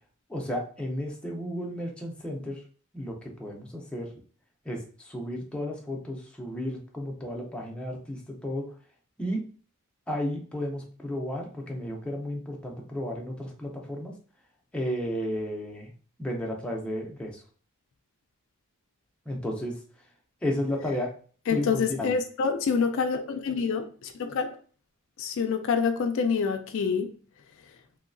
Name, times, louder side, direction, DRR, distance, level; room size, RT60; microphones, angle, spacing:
voice 1, 0.3-2.6 2.9-4.1 4.7-8.7 9.2-9.4 10.1-14.1 14.7-15.9 16.2-17.4 19.3-19.8 20.4-21.1 21.5-22.1, equal, 5° left, -1 dB, 0.5 m, -33 dB
voice 2, 21.5-24.5 25.2-27.1, left 5 dB, 60° left, 6 dB, 0.4 m, -27 dB
3.1 x 2.7 x 2.5 m, 0.42 s
head